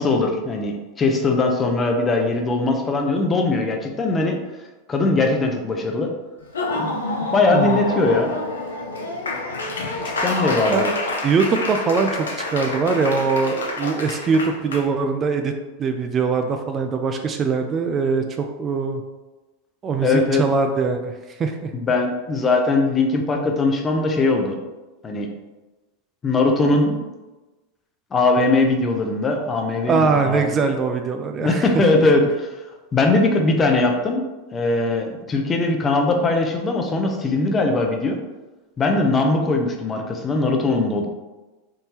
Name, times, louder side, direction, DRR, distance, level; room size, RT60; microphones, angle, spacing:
voice 1, 0.0-4.4 4.9-6.1 6.7-6.9 7.3-8.3 10.0-10.9 20.0-20.4 21.7-24.6 25.0-25.3 26.2-27.0 28.1-30.5 31.4-32.5 32.9-38.2 38.8-41.1, left 3 dB, 25° left, 3 dB, 0.5 m, -20 dB
Laughter / Applause, 6.4-14.8, left 2 dB, 90° left, 0.5 m, -27 dB
voice 2, 7.5-7.9 10.7-10.9 11.2-15.5 15.8-19.0 19.8-21.7 29.9-32.0, right 4 dB, 30° right, 5 dB, 0.3 m, -22 dB
3.6 x 2.7 x 2.9 m, 1.2 s
hypercardioid pair, 100°, 0 cm